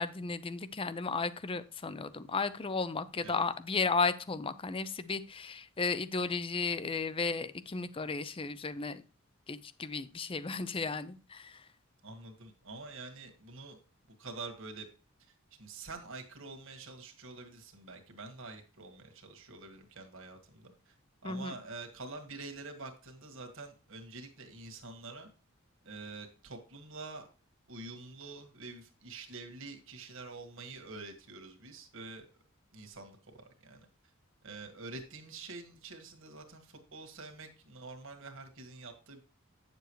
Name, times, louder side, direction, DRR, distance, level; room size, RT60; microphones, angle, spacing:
voice 1, 0.0-9.0 9.5-11.6 21.2-21.6, left 4 dB, 25° left, 15 dB, 0.5 m, -34 dB
voice 2, 12.0-13.8 14.2-14.9 15.2-15.3 15.6-20.9 21.2-25.3 25.8-27.3 27.7-32.3 32.7-33.9 34.4-39.2, right 3 dB, 65° right, 4 dB, 1.7 m, -47 dB
9.0 x 7.0 x 3.1 m, 0.36 s
head